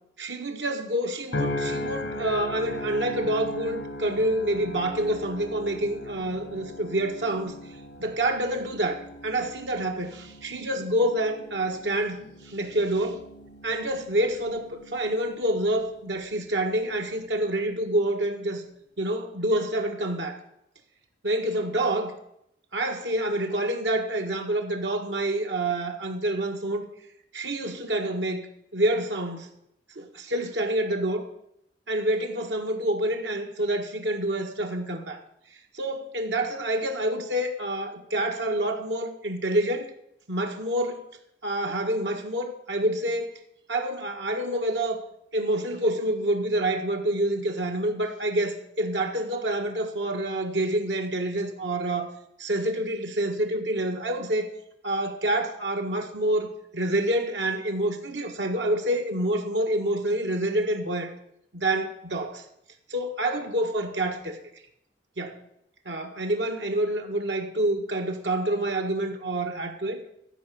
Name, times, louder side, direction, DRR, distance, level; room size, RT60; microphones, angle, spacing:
voice 1, 0.2-7.5 8.0-13.2 13.6-18.6 19.0-20.4 21.2-22.1 22.7-26.9 27.3-28.4 28.7-29.5 29.9-31.3 31.9-35.2 35.7-39.9 40.3-41.0 41.4-43.3 43.7-45.0 45.3-52.1 52.4-54.5 54.8-61.1 61.5-62.4 62.9-64.4 65.2-65.4 65.8-70.0, right 1 dB, 90° right, 1.7 m, -27 dB
sound 1, 1.3-15.8 16.3-16.8, left 1 dB, 80° left, 1.4 m, -38 dB
14.0 x 5.1 x 8.5 m
head